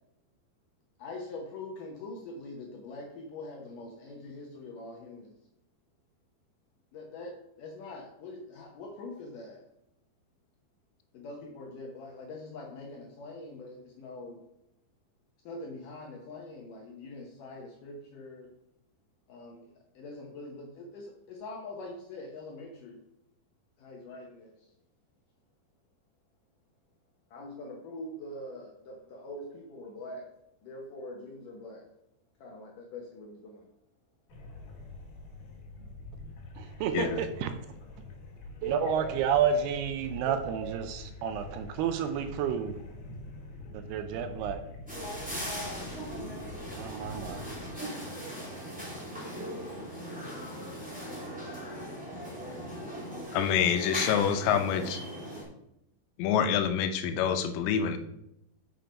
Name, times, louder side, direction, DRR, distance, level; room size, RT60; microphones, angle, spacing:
voice 1, 1.0-5.4 6.9-9.6 11.1-14.5 15.5-18.5 19.3-23.0 23.8-24.7 27.3-31.9 32.4-33.7, left 2 dB, 75° left, 0 dB, 2.0 m, -44 dB
sound 1, 34.3-47.7, left 2 dB, 55° left, 3.1 m, -45 dB
voice 2, 36.6-37.5 38.6-42.8 43.7-44.6 46.8-47.5, right 7 dB, 80° right, 7 dB, 2.5 m, -30 dB
sound 2, 44.9-55.4, equal, 5° right, 1.7 m, -39 dB
voice 3, 53.3-55.0 56.2-58.0, left 8 dB, 90° left, 8 dB, 3.0 m, -26 dB
6.8 x 6.0 x 5.1 m, 0.82 s
omnidirectional pair, 4.9 m